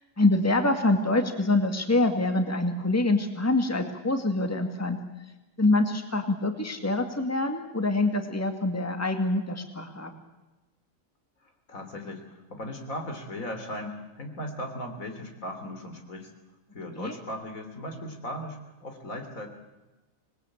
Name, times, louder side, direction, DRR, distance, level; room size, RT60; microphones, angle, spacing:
voice 1, 0.2-5.0 5.6-10.1 17.0-17.1, left 2 dB, 10° left, 6 dB, 2.0 m, -25 dB
voice 2, 11.4-16.3 16.7-19.5, left 1 dB, 80° left, 5 dB, 3.7 m, -37 dB
26.5 x 20.0 x 8.6 m, 1.1 s
omnidirectional pair, 1.4 m